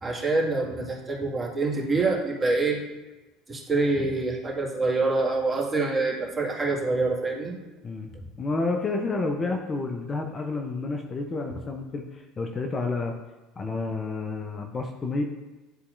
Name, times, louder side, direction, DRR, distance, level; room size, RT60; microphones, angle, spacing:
voice 1, 0.0-2.8 3.5-7.5, right 3 dB, 20° right, -3 dB, 1.9 m, -26 dB
voice 2, 8.4-13.1 13.6-15.2, left 3 dB, 30° left, 3 dB, 0.7 m, -30 dB
11.0 x 4.1 x 2.6 m, 1.1 s
figure-of-eight pair, 65°, 0 cm